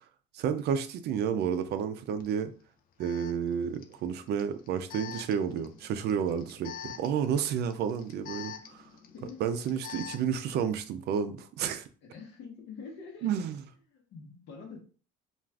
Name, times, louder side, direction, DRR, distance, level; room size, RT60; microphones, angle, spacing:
voice 1, 0.3-2.5 3.0-8.8 9.4-11.9 13.2-13.6, right 8 dB, 55° right, 0.4 m, -31 dB
Alarm, 2.2-2.3 3.0-10.4, left 9 dB, 45° left, 0.4 m, -46 dB
voice 2, 12.0-13.3 13.9-14.8, left 5 dB, 65° left, 1.0 m, -45 dB
2.4 x 2.3 x 3.3 m
cardioid pair, 125°, 20 cm